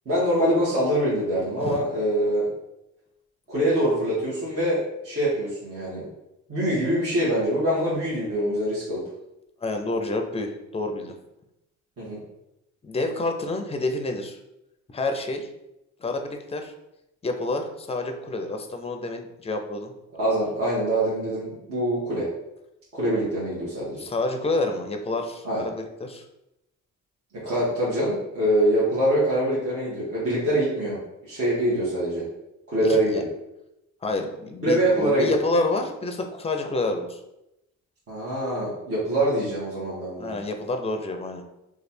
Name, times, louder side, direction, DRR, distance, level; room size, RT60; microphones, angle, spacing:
voice 1, 0.0-2.5 3.5-6.1 6.5-9.0 12.0-12.2 20.2-22.3 22.9-24.0 25.4-25.7 27.3-32.3 32.7-33.3 34.6-35.4 38.1-40.3, right 1 dB, 50° right, -8 dB, 1.4 m, -24 dB
voice 2, 9.6-11.2 12.8-14.4 14.9-15.5 16.0-16.7 17.2-19.9 24.0-26.2 32.8-33.2 34.0-37.2 40.2-41.4, left 2 dB, 20° left, 5 dB, 0.5 m, -28 dB
3.2 x 2.4 x 4.2 m, 0.89 s
cardioid pair, 90°, 30 cm